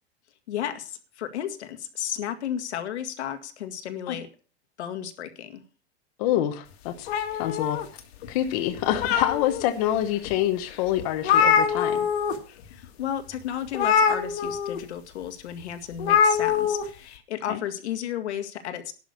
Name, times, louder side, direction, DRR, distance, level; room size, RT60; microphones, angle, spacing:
voice 1, 0.5-4.3 4.8-5.6 12.6-18.9, left 10 dB, 85° left, 1.9 m, -33 dB
voice 2, 6.2-7.1 7.4-7.8 8.3-12.1 17.5-17.6, left 12 dB, 35° left, 1.0 m, -26 dB
sound 1, 7.1-8.3 8.7-9.6 10.2-10.3 10.7-10.8 11.0-12.4 12.6-12.8 13.7-14.8 16.0-16.8, left 7 dB, 65° left, 1.9 m, -23 dB
11.5 x 6.2 x 8.4 m
supercardioid pair, 180°, 33 cm